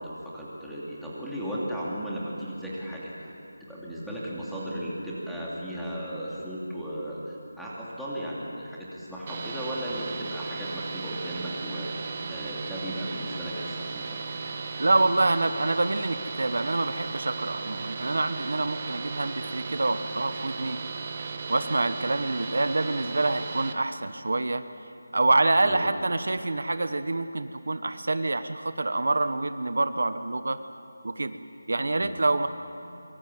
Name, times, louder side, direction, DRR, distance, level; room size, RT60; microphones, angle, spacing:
voice 1, 0.0-3.1 3.6-14.2 25.6-25.9 31.9-32.1, equal, ahead, -9 dB, 2.7 m, -35 dB
sound 1, 9.3-23.7, right 4 dB, 25° right, 1.4 m, -36 dB
voice 2, 14.8-20.8 21.5-24.6 25.1-30.6 31.0-31.4 31.7-32.5, right 2 dB, 65° right, 10 dB, 1.2 m, -26 dB
24.5 x 23.0 x 8.9 m, 2.7 s
figure-of-eight pair, 175°, 0 cm